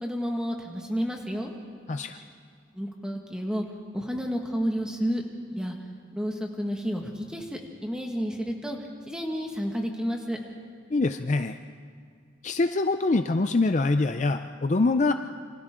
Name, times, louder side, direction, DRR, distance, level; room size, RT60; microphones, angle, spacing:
voice 1, 0.0-1.5 2.7-3.6 3.9-5.2 5.5-5.8 6.1-8.8 9.1-10.4, equal, 5° right, 1 dB, 1.8 m, -30 dB
voice 2, 10.9-11.6 12.4-15.1, left 3 dB, 35° left, 8 dB, 0.4 m, -24 dB
28.0 x 25.5 x 3.8 m, 2.1 s
head